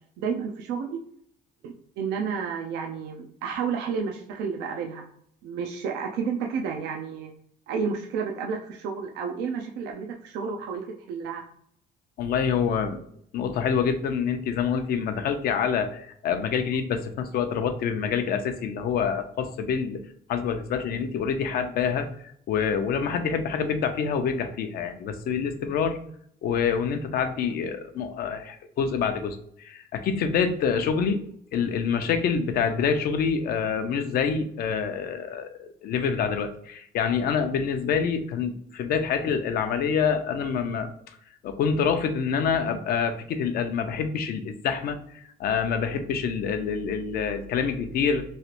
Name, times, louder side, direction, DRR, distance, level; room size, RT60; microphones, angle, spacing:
voice 1, 0.2-1.0 1.6-5.0 5.4-7.3 7.7-11.4, right 6 dB, 85° right, 1 dB, 0.5 m, -31 dB
voice 2, 12.2-13.0 13.3-20.0 20.3-22.1 22.5-26.0 26.4-31.2 31.5-40.9 41.4-45.0 45.4-48.2, left 6 dB, 65° left, 7 dB, 0.5 m, -26 dB
3.2 x 2.4 x 2.9 m, 0.68 s
cardioid pair, 110°, 17 cm